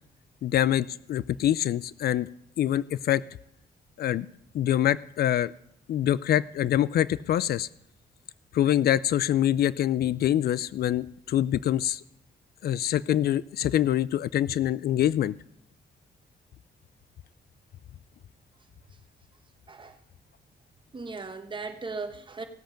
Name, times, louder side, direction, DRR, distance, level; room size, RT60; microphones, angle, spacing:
voice 1, 0.4-2.3 2.6-3.2 4.0-4.3 4.5-5.5 5.9-7.7 8.5-12.0 12.6-15.3, left 11 dB, 70° left, 19 dB, 0.4 m, -25 dB
voice 2, 20.9-22.5, right 4 dB, 30° right, 7 dB, 1.2 m, -37 dB
16.5 x 7.8 x 5.1 m, 0.76 s
cardioid pair, 95°, 17 cm